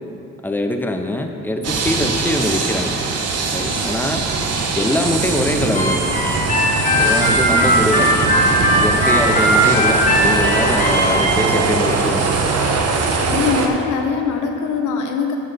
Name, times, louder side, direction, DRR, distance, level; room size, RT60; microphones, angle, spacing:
voice 1, 0.4-3.0 3.5-4.2 4.8-6.2 6.9-8.3 8.8-12.5, left 1 dB, 5° left, 5 dB, 0.6 m, -23 dB
sound 1, 1.6-13.7, right 4 dB, 55° right, 1.0 m, -21 dB
Harmonica, 5.7-11.3, equal, 25° left, 1.6 m, -18 dB
voice 2, 13.3-15.4, left 5 dB, 80° left, 5 dB, 0.9 m, -22 dB
6.8 x 6.3 x 6.5 m, 2.8 s
cardioid pair, 90°, 30 cm